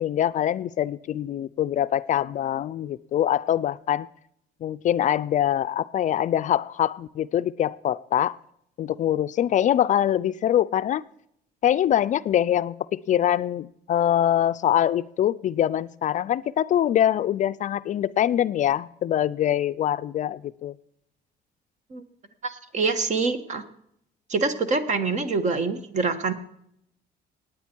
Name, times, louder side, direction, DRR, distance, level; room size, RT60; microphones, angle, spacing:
voice 1, 0.0-4.1 4.6-8.4 8.8-11.0 11.6-20.7, left 11 dB, 45° left, 14 dB, 0.4 m, -24 dB
voice 2, 22.4-23.6 24.3-26.3, right 4 dB, 45° right, 10 dB, 1.5 m, -25 dB
19.5 x 9.2 x 4.5 m, 0.73 s
cardioid pair, 110°, 17 cm